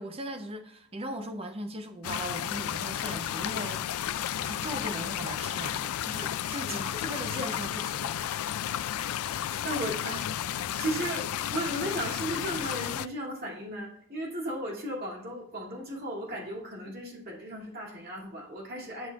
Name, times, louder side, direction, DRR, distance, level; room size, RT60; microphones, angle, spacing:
voice 1, 0.0-8.2, right 1 dB, 25° right, 6 dB, 0.8 m, -39 dB
sound 1, 2.0-13.1, left 11 dB, 80° left, 0.3 m, -33 dB
voice 2, 9.4-10.3 10.8-19.1, right 1 dB, 45° right, -2 dB, 2.5 m, -35 dB
10.5 x 6.4 x 2.4 m, 0.67 s
head